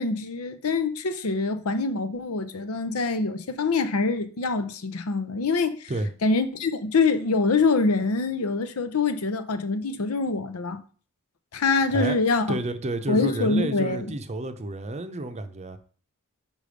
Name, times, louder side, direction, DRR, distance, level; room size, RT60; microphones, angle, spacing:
voice 1, 0.0-5.9 6.2-10.8 11.5-12.6 13.1-14.1, left 3 dB, 85° left, 0.7 m, -25 dB
voice 2, 12.5-15.8, right 2 dB, 30° right, 0.6 m, -30 dB
5.4 x 5.0 x 5.2 m
head